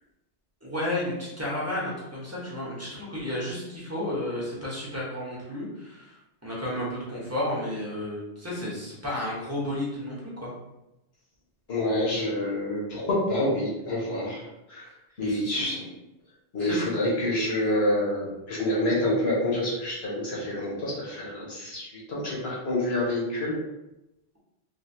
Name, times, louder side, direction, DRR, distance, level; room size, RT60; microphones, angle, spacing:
voice 1, 0.6-6.2 6.4-10.5 15.2-15.9 16.6-16.8, left 1 dB, 15° right, -6 dB, 1.0 m, -32 dB
voice 2, 11.7-14.4 14.7-14.9 15.2-15.8 16.5-23.6, left 1 dB, 65° left, -5 dB, 1.3 m, -27 dB
3.2 x 2.6 x 2.7 m, 0.93 s
omnidirectional pair, 1.1 m